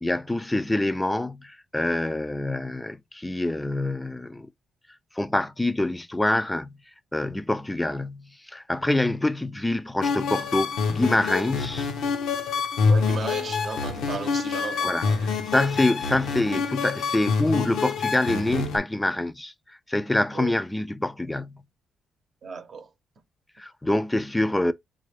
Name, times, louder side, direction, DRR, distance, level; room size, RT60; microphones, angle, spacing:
voice 1, 0.0-4.5 5.2-6.7 7.1-11.9 14.8-15.1 15.5-19.5 19.9-21.6 23.6-24.7, left 1 dB, 10° left, 0.4 m, -26 dB
sound 1, 10.0-18.8, left 5 dB, 85° left, 0.9 m, -26 dB
voice 2, 12.9-15.4 20.3-20.6 22.4-22.9, right 6 dB, 50° right, 0.8 m, -36 dB
3.9 x 2.4 x 3.3 m
cardioid pair, 90°, 0 cm